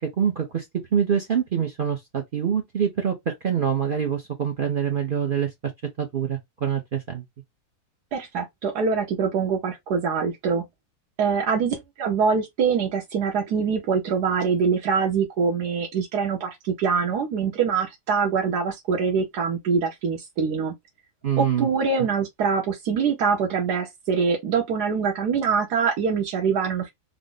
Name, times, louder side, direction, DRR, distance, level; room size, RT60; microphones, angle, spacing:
voice 1, 0.0-0.6 0.9-5.5 6.0-7.2 21.2-21.7, right 8 dB, 55° right, 0.5 m, -25 dB
voice 2, 8.1-10.6 11.2-20.7 21.4-26.9, right 5 dB, 80° right, 1.3 m, -24 dB
3.5 x 2.0 x 3.8 m
omnidirectional pair, 1.7 m